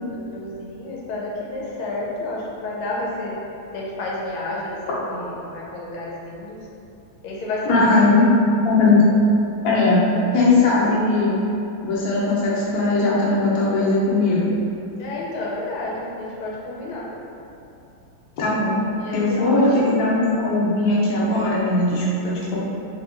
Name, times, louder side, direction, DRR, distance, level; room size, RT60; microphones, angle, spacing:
voice 1, 0.1-3.4 3.7-6.7 7.2-8.6 10.1-10.2 15.0-17.1 19.0-19.9, left 2 dB, 80° left, -4 dB, 1.5 m, -31 dB
voice 2, 7.7-8.2 8.6-9.0 9.6-10.1 10.3-11.3 11.8-14.4 18.4-18.7 19.1-22.6, left 3 dB, 60° left, -7 dB, 1.0 m, -19 dB
3.4 x 2.8 x 3.6 m, 2.7 s
omnidirectional pair, 2.4 m